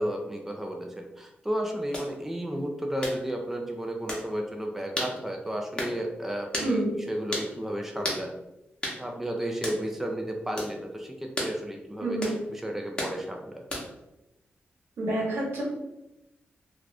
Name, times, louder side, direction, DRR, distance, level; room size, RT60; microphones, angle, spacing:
voice 1, 0.0-8.3 9.0-13.6, equal, 5° right, 2 dB, 0.4 m, -33 dB
sound 1, 1.9-2.1 3.0-3.2 4.1-4.2 5.0-5.1 5.8-6.0 6.5-6.7 7.3-7.5 8.0-8.2 8.8-9.0 9.6-9.8 10.6-10.7 11.4-11.5 12.2-12.4 13.0-13.2 13.7-14.0, left 1 dB, 25° left, 0.8 m, -32 dB
voice 2, 6.6-7.0 12.0-12.3 15.0-15.7, right 1 dB, 80° right, -4 dB, 1.0 m, -28 dB
2.4 x 2.4 x 3.3 m, 0.93 s
cardioid pair, 85°, 4 cm